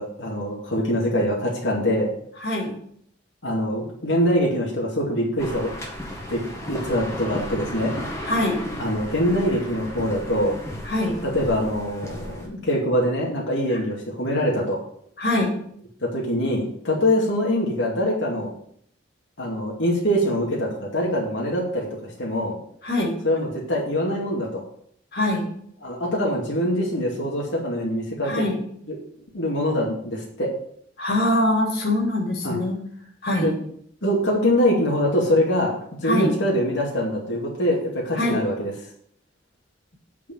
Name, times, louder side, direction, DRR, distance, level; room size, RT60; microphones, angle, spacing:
voice 1, 0.0-2.1 3.4-5.7 6.3-7.9 8.8-10.5 11.2-14.8 16.0-18.5 19.4-22.6 23.2-24.6 25.8-28.4 28.9-29.0 29.3-30.5 32.4-32.6 33.4-33.5 34.0-35.7 36.0-38.7, equal, 80° left, -3 dB, 2.3 m, -24 dB
voice 2, 2.4-2.7 8.2-8.6 10.8-11.2 13.7-13.8 15.2-15.6 22.8-23.1 25.1-25.5 28.2-28.6 31.0-32.8 33.2-33.5 36.0-36.3 38.1-38.4, left 1 dB, 55° left, -2 dB, 2.7 m, -23 dB
sound 1, 5.4-12.5, equal, 15° left, 1.9 m, -34 dB
8.6 x 4.9 x 7.5 m, 0.66 s
head